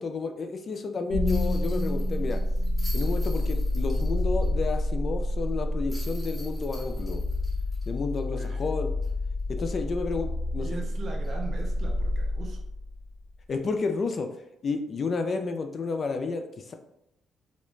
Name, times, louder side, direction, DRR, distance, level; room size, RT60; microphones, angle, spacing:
voice 1, 0.0-2.4 2.9-7.2 7.9-8.9 9.5-10.8 13.5-14.3 14.6-16.7, left 4 dB, 45° left, 6 dB, 0.3 m, -31 dB
sound 1, 1.1-13.2, left 1 dB, 75° left, 0.6 m, -28 dB
sound 2, 1.3-4.5 4.8-4.9 5.9-8.6 9.0-9.1 11.2-11.4, left 1 dB, 5° left, 0.8 m, -47 dB
voice 2, 8.4-8.7 10.6-12.6, right 4 dB, 55° right, 2 dB, 0.5 m, -40 dB
2.4 x 2.1 x 3.0 m, 0.83 s
cardioid pair, 90°, 0 cm